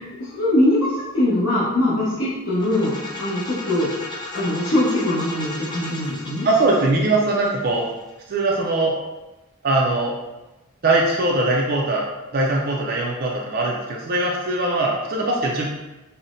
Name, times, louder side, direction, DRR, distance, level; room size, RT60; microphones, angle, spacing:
voice 1, 0.2-3.9 4.3-6.5, left 1 dB, 60° left, -11 dB, 0.9 m, -22 dB
sound 1, 2.5-8.3, left 2 dB, 20° left, 0.5 m, -35 dB
voice 2, 6.4-7.9 8.3-9.0 9.6-10.1 10.8-12.1 12.3-15.7, right 2 dB, 45° right, -2 dB, 0.3 m, -21 dB
5.4 x 2.1 x 2.5 m, 1.1 s
head